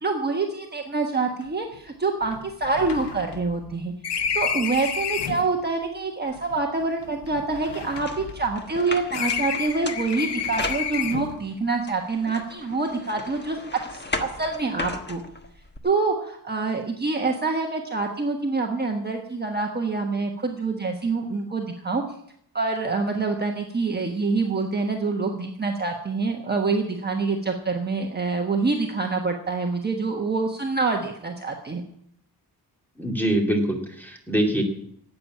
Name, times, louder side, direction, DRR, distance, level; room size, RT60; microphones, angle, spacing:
voice 1, 0.0-13.6 13.9-15.2 15.8-22.0 22.5-31.8, right 3 dB, 25° right, 1 dB, 1.3 m, -26 dB
sound 1, 1.4-1.5 1.7-1.8 2.2-5.5 6.4-8.8 9.1-11.4, left 7 dB, 90° left, 1.1 m, -31 dB
sound 2, 8.0-11.4 11.9-15.8, left 2 dB, 25° left, 1.3 m, -36 dB
voice 2, 33.0-34.6, right 1 dB, 5° left, 1 dB, 2.5 m, -24 dB
13.0 x 8.8 x 9.8 m, 0.70 s
wide cardioid pair, 175°, 40 cm